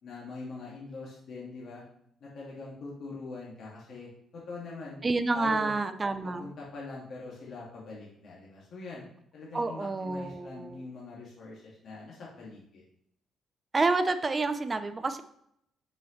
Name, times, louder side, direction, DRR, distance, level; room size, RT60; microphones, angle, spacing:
voice 1, 0.0-1.8 2.2-5.1 5.3-5.7 6.2-9.1 9.3-12.8, left 3 dB, 65° left, -5 dB, 2.3 m, -43 dB
voice 2, 5.0-6.5 9.5-10.7 13.7-15.2, right 3 dB, 30° right, 10 dB, 0.7 m, -28 dB
7.0 x 6.1 x 3.3 m, 0.71 s
cardioid pair, 90°, 0 cm